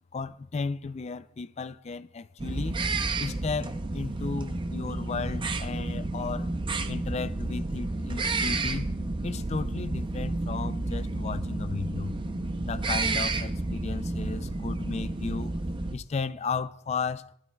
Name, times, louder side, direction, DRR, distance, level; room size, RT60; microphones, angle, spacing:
voice 1, 0.1-2.8 3.2-6.5 6.9-8.9 9.2-12.1 12.6-15.5 15.9-17.3, left 4 dB, 35° left, 0.4 m, -34 dB
sound 1, 2.4-15.9, right 2 dB, 25° right, 0.5 m, -31 dB
19.0 x 12.0 x 2.3 m
head